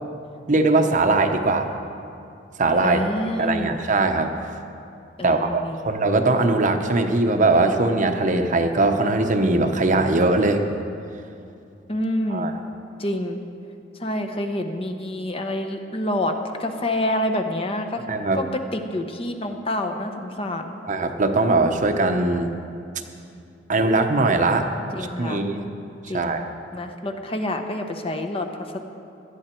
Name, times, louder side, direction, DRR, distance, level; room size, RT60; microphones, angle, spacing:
voice 1, 0.5-1.7 2.6-3.0 3.3-4.3 5.2-10.6 12.3-12.5 18.1-18.4 20.8-22.5 23.7-24.7 25.0-25.6 26.1-26.5, right 2 dB, 45° right, 6 dB, 0.9 m, -20 dB
voice 2, 2.8-3.9 5.2-5.9 11.9-12.5 13.0-13.4 14.0-18.0 18.3-18.5 18.7-20.8 24.9-25.4 26.1-28.8, left 1 dB, 30° left, 5 dB, 0.9 m, -27 dB
18.5 x 12.5 x 4.5 m, 2.5 s
head